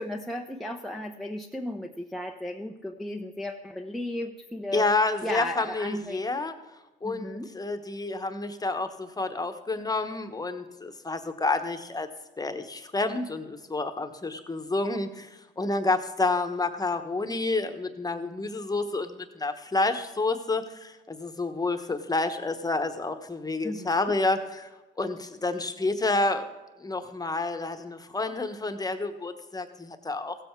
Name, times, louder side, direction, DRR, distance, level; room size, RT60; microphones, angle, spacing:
voice 1, 0.0-4.9 5.2-6.2 7.0-7.5 23.6-24.0, left 1 dB, ahead, 1 dB, 0.6 m, -35 dB
voice 2, 4.7-6.5 7.0-12.1 12.4-24.7 25.0-26.5 26.8-30.5, left 3 dB, 20° left, 8 dB, 1.1 m, -29 dB
15.5 x 7.7 x 4.6 m, 1.1 s
cardioid pair, 90°, 20 cm